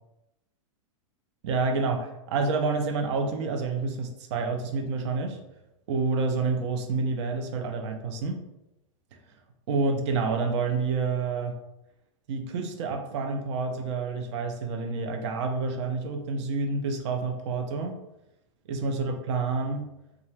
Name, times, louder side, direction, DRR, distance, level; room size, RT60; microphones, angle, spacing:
voice 1, 1.4-5.4 5.9-8.4 9.7-11.6 12.3-18.0 18.7-19.9, right 4 dB, 55° right, 4 dB, 0.6 m, -28 dB
2.5 x 2.4 x 3.1 m, 0.89 s
hypercardioid pair, 115°, 17 cm